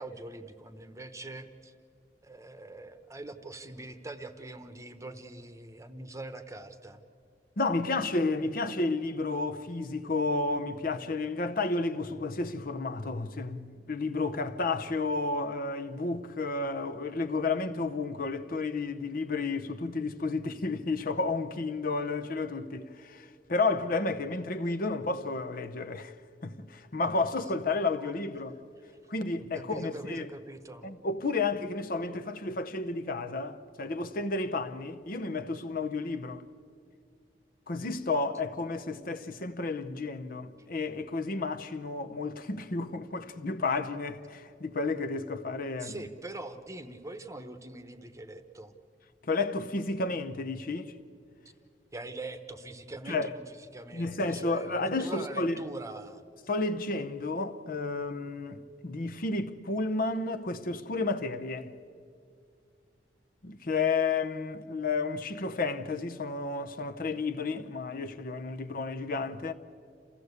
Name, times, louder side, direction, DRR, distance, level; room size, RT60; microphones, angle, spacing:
voice 1, 0.0-1.7 2.2-7.0 28.0-28.2 29.4-30.9 45.8-48.7 51.9-56.2, right 2 dB, 20° right, 1.0 m, -43 dB
voice 2, 7.6-26.1 26.4-28.5 29.1-30.3 30.8-36.4 37.7-46.0 49.2-50.9 53.1-53.3 53.9-55.6 56.5-61.7 63.4-69.5, left 3 dB, 55° left, 0.8 m, -31 dB
28.0 x 15.5 x 8.2 m
head